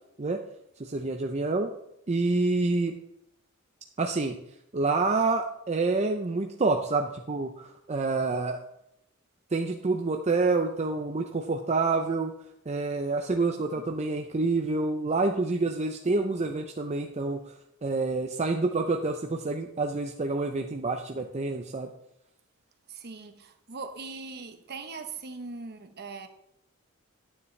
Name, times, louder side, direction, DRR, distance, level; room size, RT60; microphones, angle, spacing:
voice 1, 0.8-1.7 2.1-3.0 4.0-4.4 4.7-8.6 9.5-12.3 12.7-17.5 17.8-21.9, right 3 dB, 30° right, 3 dB, 0.6 m, -27 dB
voice 2, 22.9-26.3, right 4 dB, 50° right, 7 dB, 1.0 m, -40 dB
9.7 x 9.5 x 3.2 m, 0.78 s
head